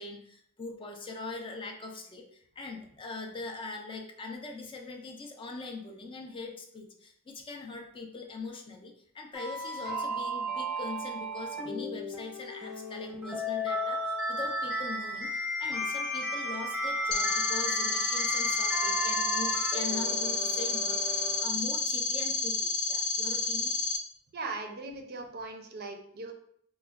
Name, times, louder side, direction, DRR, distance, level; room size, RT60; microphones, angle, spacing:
voice 1, 0.0-23.7, left 3 dB, 25° left, 3 dB, 0.4 m, -42 dB
sound 1, 9.3-21.4, equal, ahead, 0.8 m, -34 dB
sound 2, 17.1-24.0, left 4 dB, 85° left, 0.5 m, -30 dB
voice 2, 24.3-26.3, right 3 dB, 50° right, 4 dB, 0.4 m, -39 dB
4.7 x 2.1 x 2.3 m, 0.66 s
head